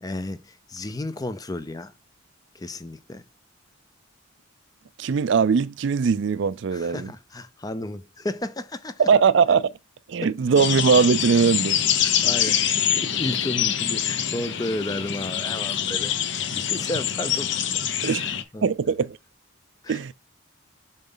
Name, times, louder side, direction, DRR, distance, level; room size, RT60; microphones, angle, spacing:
voice 1, 0.0-1.9 2.5-3.2 6.7-9.1 10.2-10.3 12.0-16.1 16.5-18.6 19.8-20.0, left 1 dB, 20° left, 0.5 m, -33 dB
voice 2, 5.0-7.1 9.0-9.7 10.1-11.8 18.0-19.2 19.9-20.1, right 6 dB, 60° right, 0.4 m, -21 dB
sound 1, 10.6-18.4, left 9 dB, 55° left, 0.7 m, -25 dB
7.2 x 4.0 x 3.9 m
head